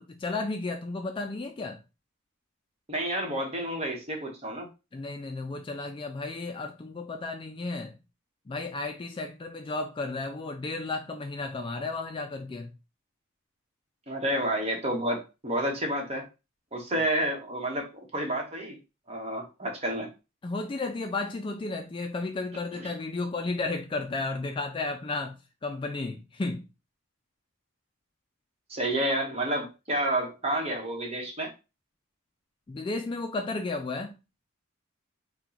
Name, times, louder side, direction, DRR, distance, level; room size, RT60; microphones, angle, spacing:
voice 1, 0.0-1.8 4.9-8.0 8.5-12.7 20.4-26.6 32.7-34.2, left 3 dB, 25° left, 0.3 m, -33 dB
voice 2, 2.9-4.7 14.1-16.3 16.7-18.8 19.1-20.1 28.7-31.5, right 1 dB, 30° right, 1.0 m, -30 dB
4.3 x 2.2 x 3.9 m
head